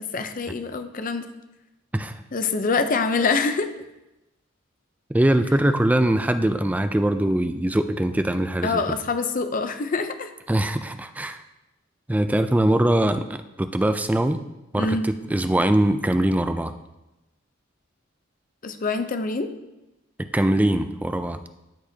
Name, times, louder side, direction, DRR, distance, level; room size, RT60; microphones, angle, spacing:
voice 1, 0.1-1.3 2.3-3.7 8.6-10.3 14.8-15.1 18.6-19.5, left 4 dB, 45° left, 9 dB, 0.6 m, -25 dB
voice 2, 1.9-2.2 5.1-8.8 10.5-11.4 12.1-14.4 14.7-16.7 20.2-21.4, right 1 dB, 10° right, 9 dB, 0.3 m, -22 dB
13.0 x 4.9 x 2.8 m, 0.96 s
head